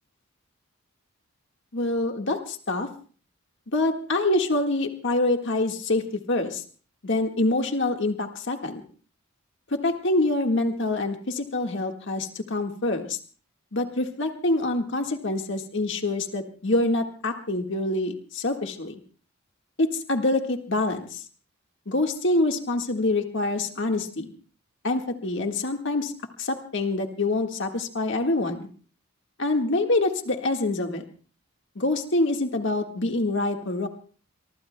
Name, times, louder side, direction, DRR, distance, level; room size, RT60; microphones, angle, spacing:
voice 1, 1.7-2.9 3.7-6.6 7.0-8.8 9.7-13.2 13.7-19.0 19.8-21.2 21.9-24.3 24.8-26.1 26.4-28.7 29.4-31.1 31.7-33.9, left 2 dB, 55° left, 4 dB, 1.7 m, -26 dB
25.5 x 24.0 x 2.2 m, 0.41 s
head